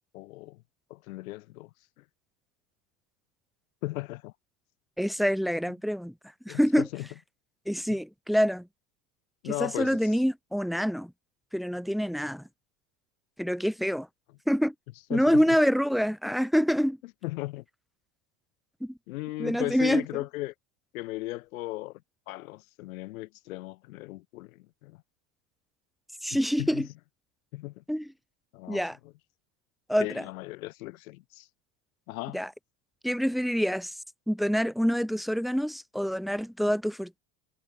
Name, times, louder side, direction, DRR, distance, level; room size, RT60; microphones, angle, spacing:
voice 1, 0.1-0.6 0.9-1.7 2.0-2.1 3.8-4.3 6.5-7.1 9.4-10.1 15.1-15.4 17.2-17.6 19.1-20.5 20.9-25.0 26.3-26.9 27.5-27.8 28.5-28.8 30.0-31.5 32.1-32.4, left 19 dB, 80° left, 4.6 m, -36 dB
voice 2, 5.0-6.1 6.4-6.9 7.7-8.7 9.6-11.1 11.5-12.4 13.4-14.1 14.5-14.7 15.1-17.0 18.8-18.9 19.4-20.0 26.2-26.9 27.9-28.1 28.7-29.0 29.9-30.2 32.3-32.5 33.0-33.9 34.3-37.2, equal, ahead, 4.6 m, -26 dB
supercardioid pair, 115°, 41 cm